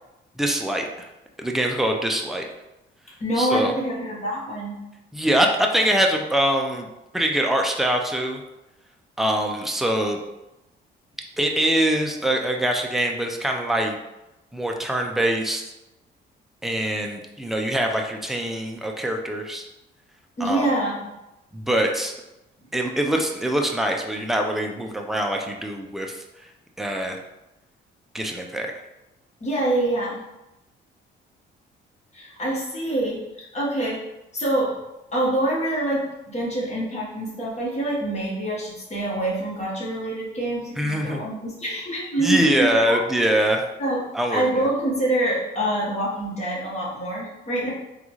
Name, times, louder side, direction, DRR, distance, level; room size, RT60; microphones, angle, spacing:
voice 1, 0.4-1.1 1.4-2.4 3.4-3.7 5.1-6.9 7.1-8.4 9.2-10.2 11.4-14.0 14.5-15.6 16.6-19.7 20.4-20.7 21.5-22.1 22.7-26.2 26.8-27.2 28.1-28.7 40.8-41.2 42.2-43.6 44.1-44.7, right 1 dB, ahead, 2 dB, 0.4 m, -23 dB
voice 2, 3.2-4.7 20.4-21.0 29.4-30.2 32.1-34.0 34.3-34.8 35.1-43.0 43.8-47.7, right 1 dB, 35° left, -5 dB, 1.4 m, -26 dB
3.7 x 2.4 x 3.1 m, 0.95 s
cardioid pair, 90°, 20 cm